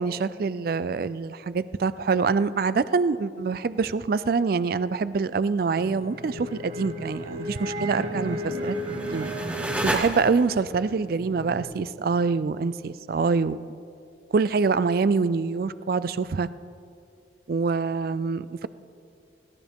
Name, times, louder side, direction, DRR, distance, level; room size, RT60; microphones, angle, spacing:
voice 1, 0.0-8.8 9.1-9.3 9.8-13.6 14.3-16.5 17.5-18.7, right 4 dB, 55° right, 15 dB, 0.4 m, -25 dB
sound 1, 5.8-11.6, equal, 80° right, 2.3 m, -34 dB
sound 2, 8.4-10.7, right 1 dB, 10° right, 1.2 m, -32 dB
22.5 x 17.0 x 3.6 m, 2.4 s
head